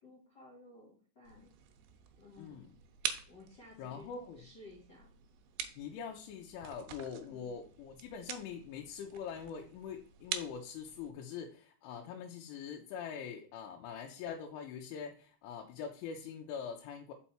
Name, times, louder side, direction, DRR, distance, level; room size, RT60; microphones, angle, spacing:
voice 1, 0.0-1.5 2.1-2.6 3.3-5.1 7.2-7.6, left 2 dB, 65° left, -4 dB, 1.0 m, -56 dB
sound 1, 1.2-11.1, right 9 dB, 90° right, 2.1 m, -46 dB
voice 2, 2.4-2.7 3.8-4.4 5.8-17.1, left 7 dB, 90° left, 1 dB, 3.3 m, -43 dB
5.7 x 5.6 x 4.2 m, 0.44 s
omnidirectional pair, 5.5 m